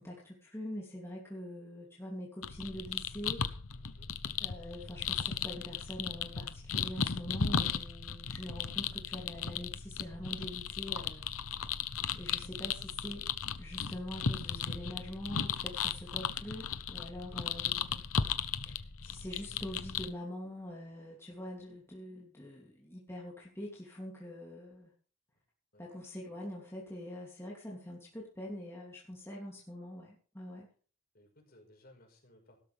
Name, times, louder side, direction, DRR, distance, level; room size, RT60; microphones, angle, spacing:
voice 1, 0.0-3.5 4.4-11.3 11.6-11.9 12.1-13.3 13.6-18.0 18.7-24.9 25.8-30.7, left 1 dB, 10° left, -4 dB, 2.9 m, -44 dB
sound 1, 2.4-20.1, left 7 dB, 80° left, 0.9 m, -36 dB
voice 2, 3.8-4.2 17.3-17.5 25.7-25.8 31.1-32.6, left 1 dB, 45° left, 2 dB, 5.0 m, -61 dB
16.5 x 13.0 x 3.5 m, 0.41 s
head